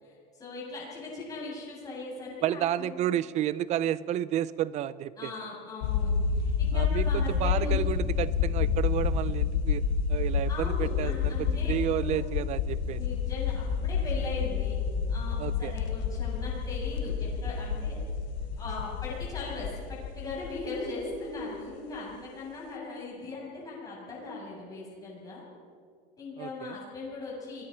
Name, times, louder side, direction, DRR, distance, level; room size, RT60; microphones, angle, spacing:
voice 1, 0.0-2.9 5.2-7.8 10.5-12.2 12.9-14.8 15.1-17.9 18.6-19.7 20.2-25.4 26.2-27.6, left 3 dB, 15° left, -6 dB, 8.0 m, -39 dB
voice 2, 2.4-5.3 6.7-9.8 10.1-13.0 15.4-15.7 26.4-26.8, right 12 dB, 35° right, 18 dB, 0.6 m, -31 dB
sound 1, 5.8-21.4, left 6 dB, 80° left, 1.5 m, -29 dB
29.5 x 22.0 x 4.5 m, 2.3 s
cardioid pair, 160°, 21 cm